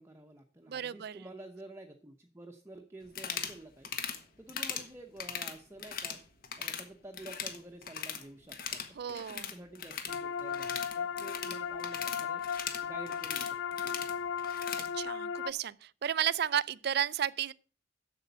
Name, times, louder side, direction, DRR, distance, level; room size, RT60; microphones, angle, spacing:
voice 1, 0.0-6.2 6.6-13.6 13.8-14.0, right 1 dB, 15° right, 0.8 m, -50 dB
voice 2, 0.7-1.2 9.0-9.5 14.9-17.5, right 9 dB, 55° right, 0.4 m, -33 dB
sound 1, 3.1-3.6 3.8-4.2 4.5-4.9 5.2-6.2 6.4-6.8 7.1-8.2 8.5-14.9, left 7 dB, 50° left, 1.4 m, -39 dB
sound 2, 10.1-15.5, left 7 dB, 75° left, 0.4 m, -36 dB
8.1 x 7.1 x 6.8 m
head